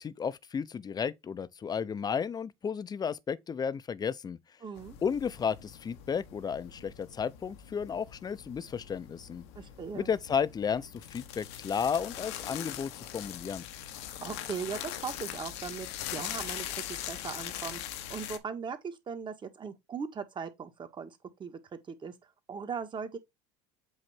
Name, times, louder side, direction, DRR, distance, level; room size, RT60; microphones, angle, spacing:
voice 1, 0.0-4.4 5.0-9.4 9.9-13.7, left 7 dB, 30° left, 0.7 m, -33 dB
voice 2, 4.6-5.0 9.5-10.1 14.2-22.1 22.5-23.2, right 6 dB, 35° right, 1.6 m, -39 dB
sound 1, 4.8-18.4, left 11 dB, 80° left, 1.2 m, -42 dB
8.0 x 3.1 x 4.4 m
supercardioid pair, 85°, 14 cm